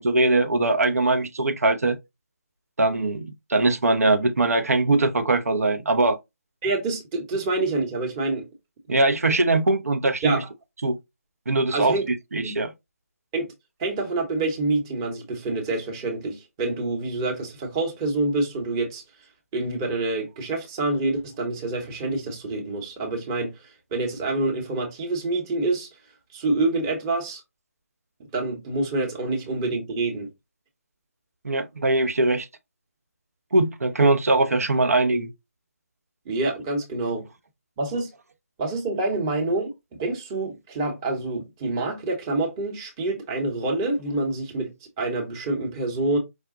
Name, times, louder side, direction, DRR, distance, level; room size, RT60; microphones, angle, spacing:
voice 1, 0.0-2.0 2.8-6.2 8.9-10.4 10.8-11.0 11.5-12.0 12.3-12.7 31.4-32.5 33.5-35.3, right 2 dB, 70° right, 0.8 m, -21 dB
voice 2, 6.6-8.5 8.9-9.0 10.2-10.5 11.7-12.0 12.4-12.6 13.3-13.5 13.8-19.0 19.5-25.9 26.3-27.4 28.3-30.3 36.3-37.2 37.8-38.1 38.6-39.7 40.0-46.2, right 2 dB, 15° right, 0.9 m, -27 dB
4.9 x 2.1 x 3.7 m
figure-of-eight pair, 155°, 8 cm